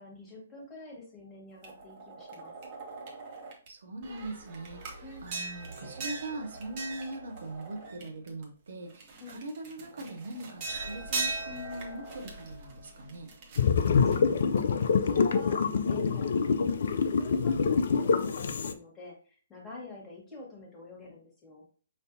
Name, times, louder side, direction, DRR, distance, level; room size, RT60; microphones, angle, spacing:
voice 1, 0.0-2.5 5.0-5.3 9.2-9.4 14.0-21.6, left 2 dB, 15° left, -3 dB, 1.5 m, -47 dB
sound 1, 1.6-3.7 4.0-8.4 8.9-14.8, right 3 dB, 40° right, 1.1 m, -40 dB
voice 2, 3.7-13.3, right 2 dB, 65° right, 4 dB, 0.7 m, -41 dB
sound 2, 13.6-18.7, left 5 dB, 60° left, 0.3 m, -26 dB
5.1 x 2.6 x 2.7 m, 0.41 s
figure-of-eight pair, 130°, 0 cm